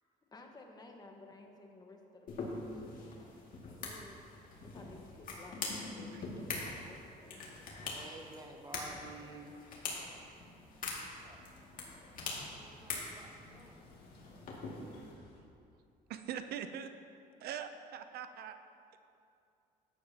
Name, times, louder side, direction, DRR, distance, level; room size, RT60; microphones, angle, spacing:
voice 1, 0.3-4.2 4.6-7.9, left 2 dB, 25° left, 2 dB, 1.2 m, -56 dB
sound 1, 2.3-15.1, left 3 dB, 55° left, 2.2 m, -44 dB
voice 2, 7.2-7.5 7.8-9.6 11.2-11.4 11.9-13.9, right 2 dB, 20° right, 3 dB, 0.9 m, -52 dB
sound 2, 9.9-15.4, left 3 dB, 70° left, 2.0 m, -60 dB
voice 3, 16.1-16.9 17.4-18.6, right 8 dB, 70° right, 9 dB, 0.6 m, -42 dB
13.5 x 9.9 x 2.9 m, 2.5 s
cardioid pair, 110°, 17 cm